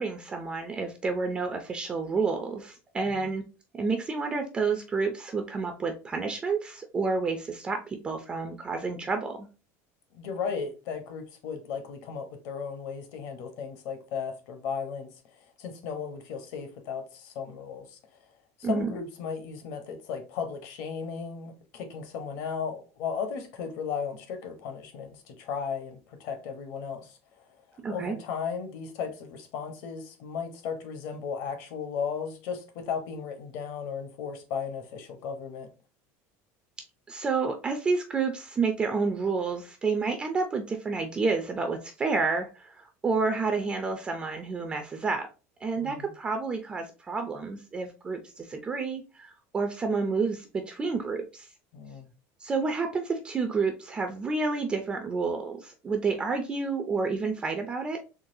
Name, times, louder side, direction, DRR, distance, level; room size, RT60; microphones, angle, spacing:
voice 1, 0.0-3.4 3.7-9.5 18.6-19.0 27.8-28.2 37.1-45.3 45.6-51.5 52.4-58.0, right 4 dB, 15° right, 0.3 m, -29 dB
voice 2, 10.1-15.1 15.6-18.0 18.6-27.2 27.9-35.7 45.8-46.1 51.7-52.1, left 6 dB, 60° left, 0.9 m, -35 dB
3.9 x 2.9 x 2.6 m
cardioid pair, 170°, 7 cm